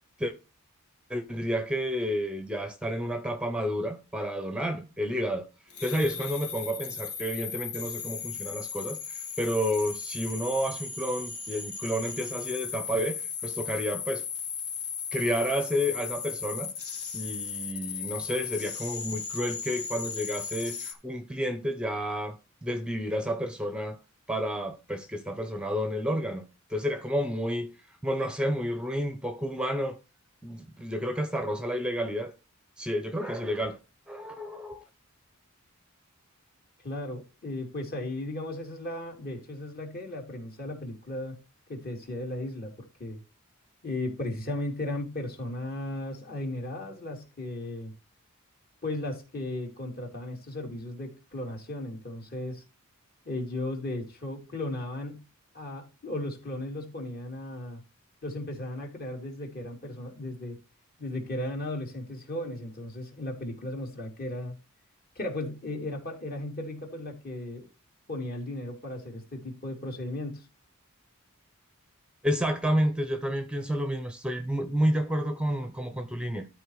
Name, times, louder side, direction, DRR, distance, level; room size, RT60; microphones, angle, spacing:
voice 1, 1.1-5.5 5.8-14.2 15.1-16.7 17.1-22.4 22.6-24.0 24.3-26.4 26.7-30.0 30.4-32.3 32.8-33.8 34.1-34.8 72.2-76.5, equal, 5° right, 0.8 m, -30 dB
sound 1, 5.7-20.9, left 6 dB, 80° left, 2.2 m, -36 dB
voice 2, 36.8-41.4 41.7-43.2 43.8-47.9 48.8-52.6 53.2-55.2 55.5-57.8 58.2-60.6 61.0-64.5 65.1-67.7 68.1-70.5, left 1 dB, 45° left, 3.1 m, -36 dB
12.5 x 4.4 x 4.8 m
head